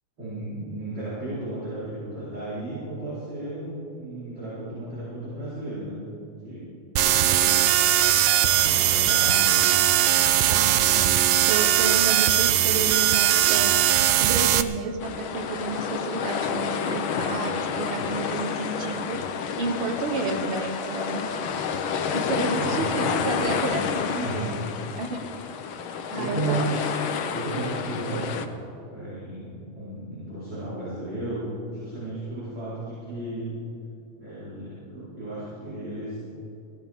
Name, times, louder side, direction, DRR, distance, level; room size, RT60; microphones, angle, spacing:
voice 1, 0.2-6.0 6.4-6.7 7.0-7.8 8.5-9.6 10.0-10.6 22.5-23.1 24.2-24.4 26.1-26.8 27.3-28.4 28.9-33.5 34.2-36.2, right 2 dB, 35° right, -11 dB, 4.9 m, -34 dB
sound 1, 7.0-14.6, right 12 dB, 75° right, 1.7 m, -20 dB
voice 2, 10.5-11.2 11.5-13.8 14.2-19.2 19.6-21.3 22.1-24.7 24.9-25.2 26.1-26.6, right 3 dB, 55° right, 5 dB, 1.8 m, -31 dB
sound 2, 15.0-28.5, left 6 dB, 75° left, 1.1 m, -29 dB
21.5 x 16.5 x 3.6 m, 2.8 s
omnidirectional pair, 3.3 m